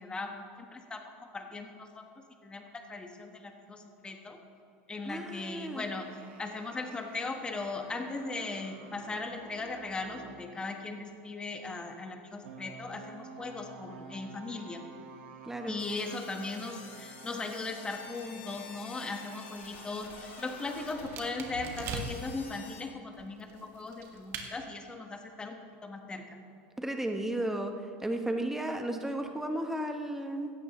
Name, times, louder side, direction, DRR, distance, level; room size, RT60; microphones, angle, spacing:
voice 1, 0.0-2.0 2.4-2.6 2.9-4.4 4.9-6.1 6.4-14.8 15.7-26.2, left 3 dB, 15° left, 4 dB, 1.3 m, -38 dB
voice 2, 5.0-5.9 15.5-15.8 26.8-27.7 28.0-30.5, right 1 dB, 5° right, 5 dB, 1.0 m, -34 dB
sound 1, 5.8-10.5 12.4-22.6, right 4 dB, 85° right, 2.0 m, -51 dB
sound 2, 15.8-22.8, left 6 dB, 90° left, 2.0 m, -49 dB
sound 3, 19.5-22.4 23.1-24.5, right 4 dB, 45° right, 1.6 m, -42 dB
16.5 x 12.5 x 3.1 m, 2.7 s
supercardioid pair, 130°, 6 cm